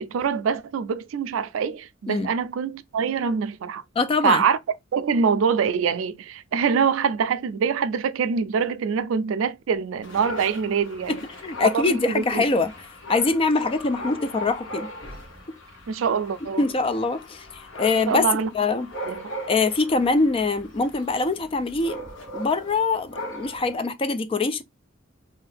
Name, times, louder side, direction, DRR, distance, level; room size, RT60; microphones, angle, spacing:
voice 1, 0.0-3.8 4.2-4.6 4.9-11.2 11.7-12.4 15.9-16.6 18.1-18.5 19.0-19.2, right 6 dB, 80° right, 0.4 m, -24 dB
voice 2, 4.0-4.4 11.1-12.7 13.1-14.9 15.5-15.6 16.6-18.2 18.5-18.9 19.5-22.0 22.3-24.6, left 3 dB, 30° left, 0.3 m, -23 dB
Dog, 10.0-23.8, equal, 70° left, 1.3 m, -39 dB
2.7 x 2.4 x 3.3 m
head